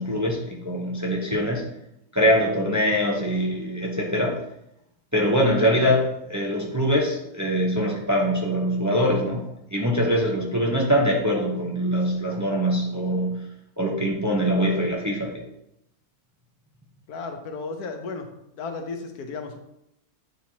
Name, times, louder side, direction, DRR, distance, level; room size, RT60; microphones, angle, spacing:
voice 1, 0.0-1.6 2.1-4.4 5.1-13.4 13.8-15.4, equal, 15° right, -1 dB, 0.6 m, -23 dB
voice 2, 17.1-18.3 18.5-19.6, left 4 dB, 85° left, 5 dB, 1.4 m, -34 dB
9.3 x 4.5 x 2.8 m, 0.83 s
omnidirectional pair, 1.6 m